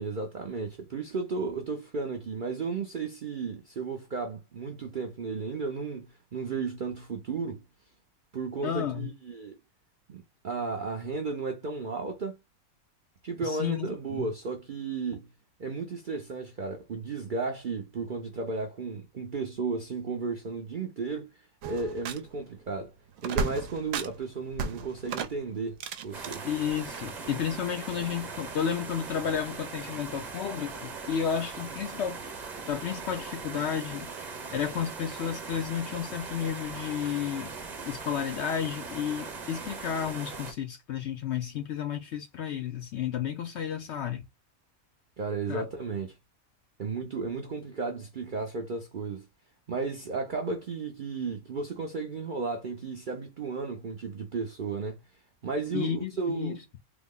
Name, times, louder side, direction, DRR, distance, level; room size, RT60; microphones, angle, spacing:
voice 1, 0.0-7.6 8.3-9.6 10.1-12.4 13.2-15.3 15.6-21.3 21.7-22.9 23.2-25.8 26.0-26.5 45.2-46.2 46.8-49.2 49.7-55.0 55.4-56.6, right 4 dB, 55° right, 0.5 m, -34 dB
voice 2, 8.6-9.1 13.4-14.3 26.4-32.2 32.7-34.1 34.5-37.5 37.8-44.2 45.5-45.7 55.7-56.8, left 8 dB, 65° left, 0.7 m, -32 dB
sound 1, 21.6-22.5 22.7-22.8 23.1-24.2 24.5-26.4 26.9-27.3, right 5 dB, 75° right, 1.0 m, -34 dB
sound 2, 26.1-40.5, right 4 dB, 35° right, 0.9 m, -40 dB
3.5 x 2.0 x 3.6 m
omnidirectional pair, 1.5 m